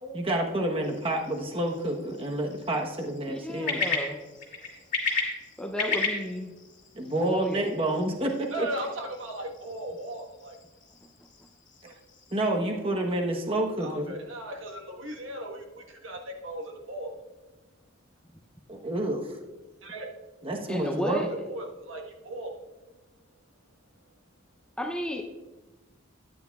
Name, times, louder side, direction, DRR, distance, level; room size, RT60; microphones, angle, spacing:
voice 1, 0.0-3.9 6.9-8.7 12.3-14.2 18.7-19.2 20.4-21.3, right 1 dB, 25° right, 2 dB, 1.0 m, -29 dB
sound 1, 0.8-12.5, left 4 dB, 40° left, 2.2 m, -36 dB
voice 2, 3.3-4.2 5.6-6.5 7.3-7.7 20.7-21.3 24.8-25.2, equal, 5° left, 3 dB, 0.5 m, -32 dB
voice 3, 4.4-4.8 8.5-10.6 11.8-11.9 13.8-17.1 19.8-20.1 21.5-22.5, right 1 dB, 70° right, 1 dB, 1.3 m, -37 dB
13.0 x 9.7 x 2.3 m, 1.2 s
head